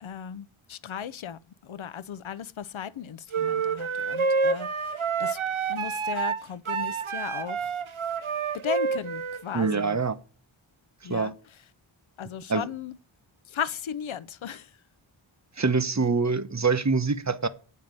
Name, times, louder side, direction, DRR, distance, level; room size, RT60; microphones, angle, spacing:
voice 1, 0.0-5.4 5.7-7.7 8.6-10.0 11.0-11.3 12.2-13.0 13.5-14.7, left 8 dB, 70° left, 0.7 m, -36 dB
sound 1, 3.3-9.8, right 5 dB, 75° right, 0.9 m, -28 dB
voice 2, 9.5-10.2 11.1-11.3 12.5-12.7 15.6-17.5, right 4 dB, 35° right, 1.0 m, -25 dB
8.6 x 5.5 x 7.7 m
wide cardioid pair, 60°, 49 cm